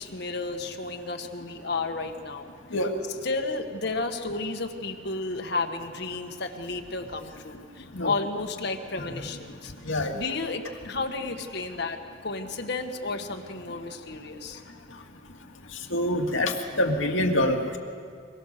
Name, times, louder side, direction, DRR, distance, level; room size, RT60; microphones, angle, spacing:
voice 1, 0.0-2.5 3.2-9.7 10.1-14.6, left 3 dB, 60° left, 4 dB, 1.5 m, -32 dB
voice 2, 15.9-17.8, left 1 dB, 80° left, 3 dB, 2.2 m, -25 dB
24.0 x 23.5 x 6.7 m, 2.2 s
head